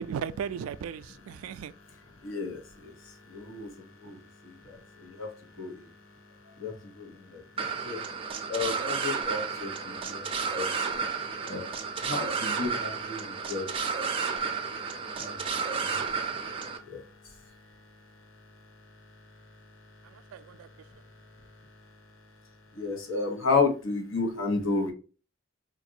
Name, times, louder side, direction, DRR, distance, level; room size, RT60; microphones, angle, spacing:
voice 1, 0.0-1.7 4.0-4.2 20.0-20.7, right 7 dB, 85° right, 0.3 m, -36 dB
voice 2, 2.2-6.0 6.4-8.0 8.5-17.5 20.9-21.0 22.7-24.9, left 4 dB, 70° left, 1.0 m, -34 dB
sound 1, 7.6-16.8, right 5 dB, 25° right, 0.5 m, -32 dB
3.9 x 2.5 x 2.7 m
head